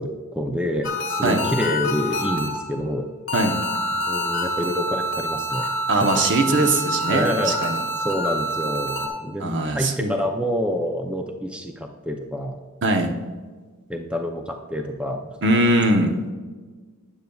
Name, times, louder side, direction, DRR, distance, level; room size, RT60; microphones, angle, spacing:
voice 1, 0.0-3.1 4.0-5.7 6.0-6.2 6.6-6.7 7.1-7.6 8.0-12.6 13.9-15.4, equal, 5° right, 3 dB, 0.5 m, -27 dB
sound 1, 0.8-2.8 3.3-9.1, equal, 60° left, 1.4 m, -27 dB
voice 2, 5.9-7.8 9.4-10.1 12.8-13.1 15.4-16.1, right 2 dB, 55° right, 5 dB, 0.9 m, -21 dB
12.0 x 9.0 x 2.3 m, 1.4 s
head